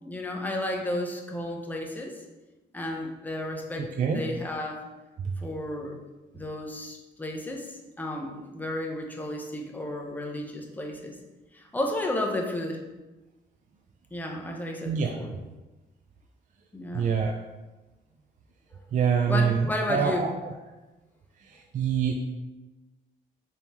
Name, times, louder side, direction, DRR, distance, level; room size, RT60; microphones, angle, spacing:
voice 1, 0.0-2.2 2.7-4.9 5.4-6.0 6.3-11.1 11.5-12.8 14.1-15.3 16.7-17.1 19.3-20.3, left 1 dB, 10° left, 1 dB, 0.7 m, -33 dB
voice 2, 14.8-15.2 16.9-17.3 18.9-20.5 21.5-22.1, right 6 dB, 40° right, 2 dB, 0.4 m, -25 dB
4.2 x 3.4 x 2.9 m, 1.1 s
cardioid pair, 90°, 20 cm